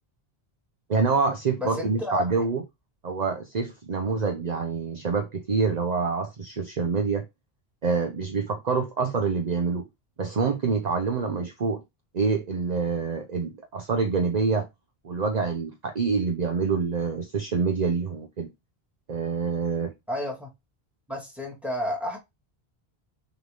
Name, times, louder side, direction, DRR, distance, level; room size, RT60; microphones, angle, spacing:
voice 1, 0.9-2.6 3.0-7.2 7.8-9.9 10.2-11.8 12.1-14.7 15.0-18.5 19.1-19.9, right 4 dB, 45° right, 0.9 m, -26 dB
voice 2, 1.6-2.2 20.1-20.5 21.1-22.2, left 1 dB, ahead, 2.5 m, -31 dB
6.6 x 4.0 x 3.7 m
omnidirectional pair, 1.1 m